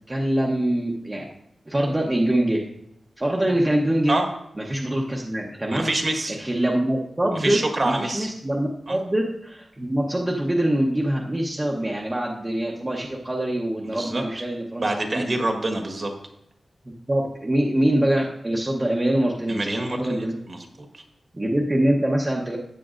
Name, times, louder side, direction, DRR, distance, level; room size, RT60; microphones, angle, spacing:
voice 1, 0.1-1.3 1.7-2.6 3.2-4.1 4.7-5.9 6.4-14.8 15.1-15.2 16.8-20.3 21.3-22.6, right 1 dB, 20° right, -2 dB, 0.9 m, -24 dB
voice 2, 5.7-6.4 7.3-8.3 8.9-9.0 13.9-14.2 14.8-16.1 19.5-20.6 20.9-21.0, right 2 dB, 40° right, 4 dB, 1.4 m, -26 dB
14.0 x 8.4 x 2.5 m, 0.77 s
wide cardioid pair, 125°, 0 cm